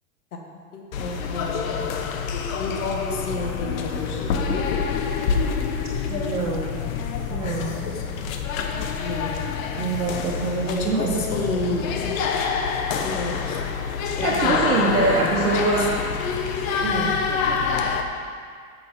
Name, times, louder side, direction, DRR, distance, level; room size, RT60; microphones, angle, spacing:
voice 1, 0.3-1.9 2.6-4.6 9.0-9.4 10.6-11.9 13.0-15.9, left 3 dB, 85° left, 1 dB, 1.4 m, -31 dB
sound 1, 0.9-18.0, left 6 dB, 65° left, 0.9 m, -27 dB
sound 2, 2.8-10.0, left 8 dB, 50° left, 1.7 m, -39 dB
sound 3, 4.1-12.9, left 6 dB, 30° left, 0.8 m, -43 dB
voice 2, 6.1-6.8 7.3-7.8 9.8-11.2 14.2-15.9 16.8-17.3, right 4 dB, 80° right, -3 dB, 1.3 m, -24 dB
9.1 x 6.9 x 3.7 m, 2.1 s
hypercardioid pair, 110°, 43 cm